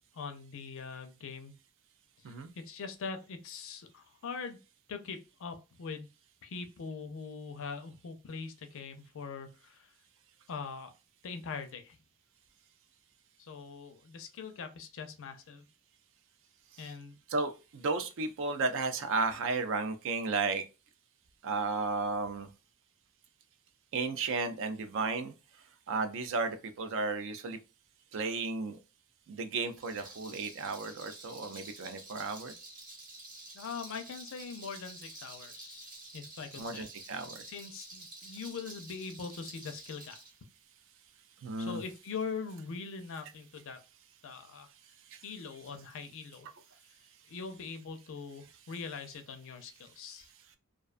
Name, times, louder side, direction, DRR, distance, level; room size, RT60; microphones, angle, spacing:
voice 1, 0.1-1.5 2.2-4.6 4.9-6.1 6.4-9.9 10.5-10.9 11.2-12.0 13.4-15.7 16.8-17.2 33.5-37.2 37.5-40.2 41.6-43.8 44.2-44.7 45.2-46.5 47.3-50.3, left 5 dB, 60° left, 0.5 m, -42 dB
voice 2, 17.3-20.6 21.4-22.5 23.9-25.3 25.9-27.6 28.1-28.8 29.3-32.5 36.6-37.4 41.4-41.8 45.1-45.2, right 4 dB, 60° right, 0.4 m, -33 dB
Rattle, 29.7-40.3, right 2 dB, 40° right, 0.8 m, -49 dB
2.4 x 2.2 x 2.4 m
head